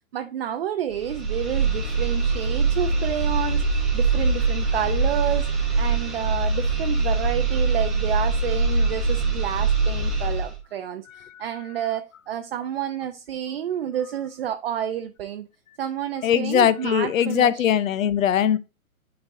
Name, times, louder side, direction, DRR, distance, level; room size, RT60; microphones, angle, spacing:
voice 1, 0.1-5.5 5.8-15.5 15.8-17.6, right 10 dB, 45° right, 0.6 m, -30 dB
sound 1, 0.9-10.6, right 3 dB, ahead, 0.7 m, -23 dB
voice 2, 16.2-18.6, left 9 dB, 65° left, 0.7 m, -20 dB
10.0 x 4.0 x 2.6 m
hypercardioid pair, 150°, 43 cm